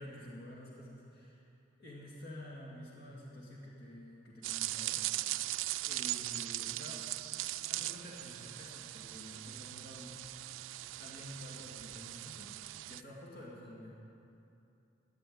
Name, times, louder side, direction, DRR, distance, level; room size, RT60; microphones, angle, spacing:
voice 1, 0.0-1.4 1.8-5.0 5.8-7.1 7.7-10.2 10.5-10.6 11.0-12.5 12.9-13.9, left 1 dB, 55° left, -4 dB, 2.2 m, -49 dB
sound 1, 4.4-13.0, right 17 dB, 75° right, 0.3 m, -39 dB
13.0 x 9.7 x 8.7 m, 2.7 s
head